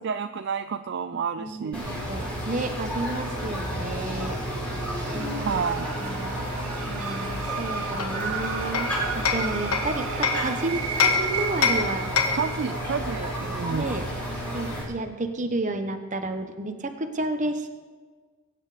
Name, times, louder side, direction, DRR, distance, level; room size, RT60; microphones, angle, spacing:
voice 1, 0.0-1.9 5.4-5.9 9.9-10.2 12.3-14.0, right 6 dB, 50° right, 10 dB, 0.4 m, -30 dB
voice 2, 1.4-4.4 5.1-5.6 6.0-6.4 6.9-12.1 13.7-14.0 14.5-17.7, right 2 dB, 35° right, 7 dB, 1.2 m, -31 dB
sound 1, 1.7-14.8, equal, 5° left, 6.0 m, -32 dB
sound 2, 4.7-14.6, right 5 dB, 75° right, 1.7 m, -35 dB
Hammer, 8.0-10.5 11.0-12.6, left 5 dB, 85° left, 1.5 m, -26 dB
22.5 x 9.8 x 5.1 m, 1.5 s
head